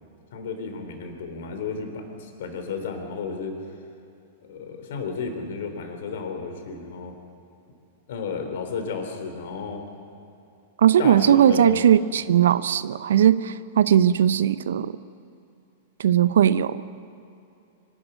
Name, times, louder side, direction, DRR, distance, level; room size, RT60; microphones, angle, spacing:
voice 1, 0.3-3.5 4.5-7.1 8.1-9.8 11.0-11.8, left 5 dB, 65° left, 5 dB, 3.4 m, -32 dB
voice 2, 10.8-14.9 16.0-16.8, right 10 dB, 70° right, 16 dB, 0.6 m, -18 dB
25.0 x 12.0 x 8.9 m, 2.7 s
hypercardioid pair, 105°, 0 cm